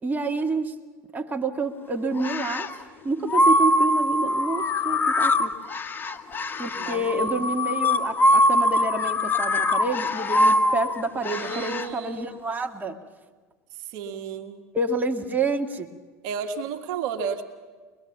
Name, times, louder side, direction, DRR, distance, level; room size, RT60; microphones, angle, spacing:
voice 1, 0.0-0.8 1.1-5.5 6.6-13.0 14.7-15.9, right 2 dB, 20° right, 4 dB, 1.8 m, -28 dB
sound 1, 2.2-2.8 3.3-11.9, left 1 dB, 25° left, 1.3 m, -23 dB
voice 2, 6.7-7.4 11.2-12.3 13.8-14.6 16.2-17.4, right 6 dB, 60° right, 5 dB, 1.6 m, -33 dB
23.5 x 21.0 x 7.2 m, 1.4 s
hypercardioid pair, 80°, 8 cm